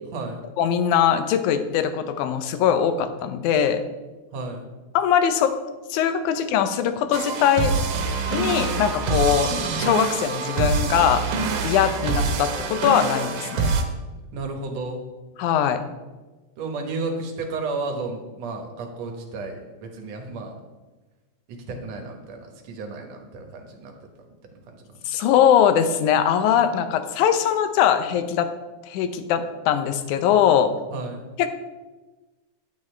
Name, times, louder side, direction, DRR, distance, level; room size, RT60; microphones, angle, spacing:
voice 1, 0.6-3.8 5.0-5.5 5.9-7.7 8.3-9.5 9.8-11.2 11.6-13.7 15.4-15.8 25.1-28.5 28.8-30.7 31.4-31.5, left 9 dB, 80° left, 9 dB, 2.1 m, -21 dB
voice 2, 4.3-4.6 14.3-15.0 16.6-20.5 21.5-24.1 24.7-24.8 30.9-31.2, right 3 dB, 65° right, 3 dB, 2.2 m, -32 dB
sound 1, 7.1-13.8, right 4 dB, 80° right, 2.4 m, -25 dB
9.6 x 8.9 x 3.2 m, 1.2 s
omnidirectional pair, 3.5 m